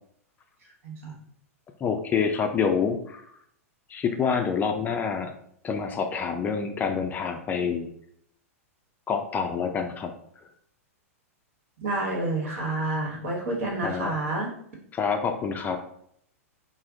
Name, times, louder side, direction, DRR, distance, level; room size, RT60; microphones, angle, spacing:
voice 1, 0.8-1.2 11.8-14.5, right 2 dB, 65° right, -1 dB, 1.2 m, -29 dB
voice 2, 1.8-3.2 3.9-5.3 5.6-7.9 9.1-10.1 13.8-14.1 14.9-15.8, left 6 dB, 20° left, 5 dB, 0.4 m, -27 dB
3.4 x 2.0 x 3.7 m, 0.69 s
hypercardioid pair, 105°, 8 cm